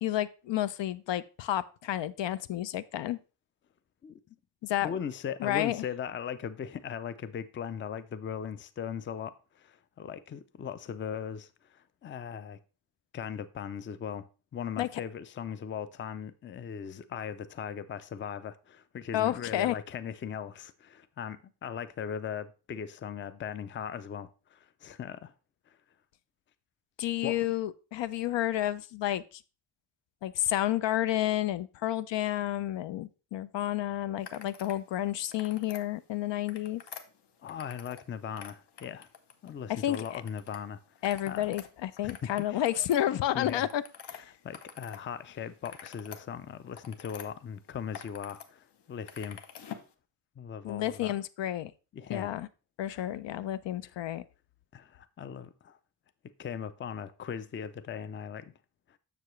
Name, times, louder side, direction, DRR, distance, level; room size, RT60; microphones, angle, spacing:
voice 1, 0.0-3.2 4.6-4.9 5.4-5.8 14.8-14.9 19.1-19.8 27.0-29.2 30.2-36.8 39.7-40.0 41.0-43.8 44.1-44.2 50.6-51.7 52.1-52.5 52.8-54.2, left 13 dB, 85° left, 0.5 m, -30 dB
voice 2, 4.0-4.4 4.8-12.6 13.1-14.3 14.5-25.3 25.7-25.8 27.2-27.4 37.4-39.1 39.4-40.8 41.3-41.5 42.0-42.6 43.1-43.7 44.1-49.4 50.4-51.2 51.9-52.4 52.9-53.1 53.8-54.0 54.7-55.8 56.4-58.5 58.9-59.0, left 8 dB, 30° left, 0.3 m, -39 dB
sound 1, 34.2-34.8 35.2-35.8 36.3-38.1 38.3-39.5 39.9-40.6 40.9-45.0 45.4-47.3 47.7-48.5 48.7-49.9, left 8 dB, 70° left, 0.9 m, -47 dB
6.9 x 6.7 x 3.1 m
wide cardioid pair, 155°, 42 cm